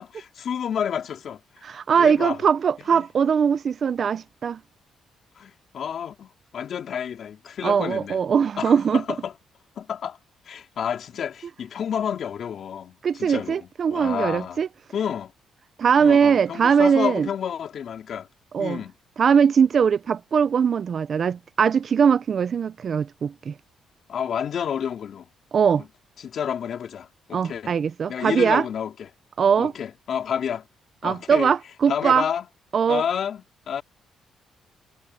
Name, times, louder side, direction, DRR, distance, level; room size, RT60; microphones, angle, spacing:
voice 1, 0.0-2.4 2.9-3.1 5.4-8.2 8.6-9.3 9.8-10.2 10.5-14.6 14.9-15.3 16.0-18.3 18.6-18.9 24.1-25.3 25.8-25.9 26.2-27.8 28.1-29.1 29.6-30.7 31.0-31.5 31.9-32.5 32.9-33.8, left 8 dB, 60° left, 3.6 m, -30 dB
voice 2, 1.6-4.6 7.6-9.0 13.0-14.7 15.8-17.3 18.5-18.8 19.2-23.5 25.5-25.8 27.3-28.6 29.4-29.7 31.0-32.3 32.7-33.0, right 7 dB, 50° right, 0.5 m, -21 dB
cardioid pair, 90°, 0 cm